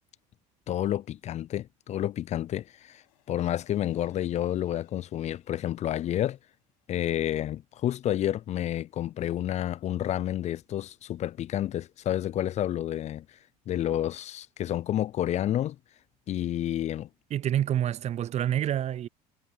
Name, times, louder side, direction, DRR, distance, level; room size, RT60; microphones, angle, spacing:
voice 1, 0.7-3.0 3.3-6.4 6.9-13.4 13.7-15.8 16.3-17.1, left 12 dB, 40° left, 0.4 m, -30 dB
sound 1, 2.5-9.0 9.5-9.6, left 21 dB, 85° left, 7.3 m, -71 dB
voice 2, 17.3-19.1, right 11 dB, 40° right, 0.4 m, -27 dB
supercardioid pair, 90°, 18 cm